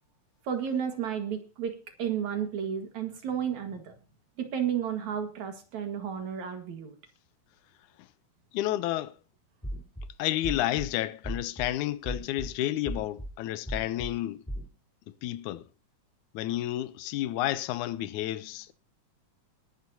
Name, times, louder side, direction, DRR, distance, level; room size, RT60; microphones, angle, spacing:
voice 1, 0.4-3.9 4.4-6.9, right 8 dB, 65° right, 3.1 m, -32 dB
voice 2, 8.5-9.2 10.2-14.4 15.2-15.6 16.3-18.7, left 14 dB, 80° left, 2.2 m, -31 dB
sound 1, 9.6-10.0 10.4-10.9 11.2-11.7 12.0-12.5 12.8-13.3 13.7-14.1 14.5-14.7, equal, 5° left, 3.7 m, -35 dB
20.5 x 11.5 x 2.8 m
omnidirectional pair, 3.6 m